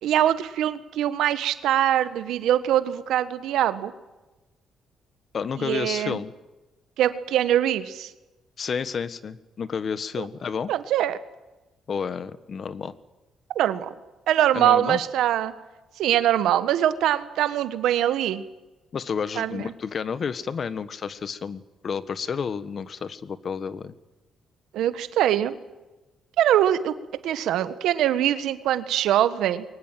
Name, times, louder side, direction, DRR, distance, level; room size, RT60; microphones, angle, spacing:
voice 1, 0.0-3.9 5.6-6.2 7.0-8.1 10.2-10.3 10.7-11.2 13.5-13.9 14.3-15.5 16.0-18.4 19.4-19.6 24.7-25.5 26.4-26.9 27.2-29.6, right 11 dB, 80° right, 13 dB, 1.4 m, -23 dB
voice 2, 5.3-6.3 8.6-10.7 11.9-12.9 14.5-15.0 18.9-23.9, left 6 dB, 50° left, 15 dB, 1.4 m, -30 dB
22.5 x 19.0 x 9.2 m, 1.1 s
cardioid pair, 90°, 0 cm